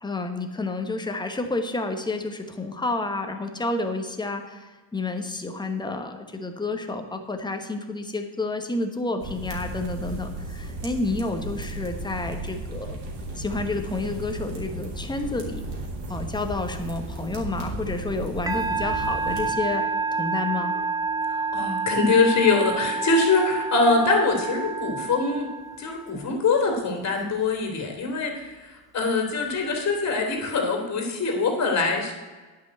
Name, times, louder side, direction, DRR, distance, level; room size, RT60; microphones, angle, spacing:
voice 1, 0.0-13.0 13.4-15.7 16.1-20.7, left 3 dB, 10° left, 6 dB, 1.1 m, -30 dB
sound 1, 9.2-19.5, right 2 dB, 60° right, 3.1 m, -35 dB
Musical instrument, 18.5-26.1, right 4 dB, 10° right, 0.8 m, -28 dB
voice 2, 21.3-25.5 25.8-32.1, left 3 dB, 35° left, 2 dB, 2.9 m, -23 dB
9.5 x 5.8 x 7.9 m, 1.3 s
supercardioid pair, 115°, 47 cm